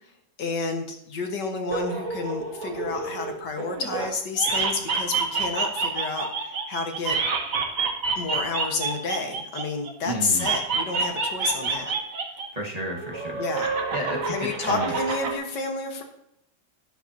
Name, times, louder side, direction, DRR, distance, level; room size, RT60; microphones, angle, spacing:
voice 1, 0.4-7.2 8.2-11.9 13.4-13.7 14.3-16.0, left 3 dB, 85° left, 3 dB, 2.1 m, -30 dB
sound 1, 1.7-4.1 4.4-9.9 10.4-12.5 12.7-15.3, right 4 dB, 55° right, 1.7 m, -28 dB
voice 2, 10.0-10.5 12.5-13.5 13.9-14.9, right 1 dB, 25° right, -1 dB, 1.4 m, -32 dB
12.0 x 10.5 x 2.9 m, 0.79 s
omnidirectional pair, 1.8 m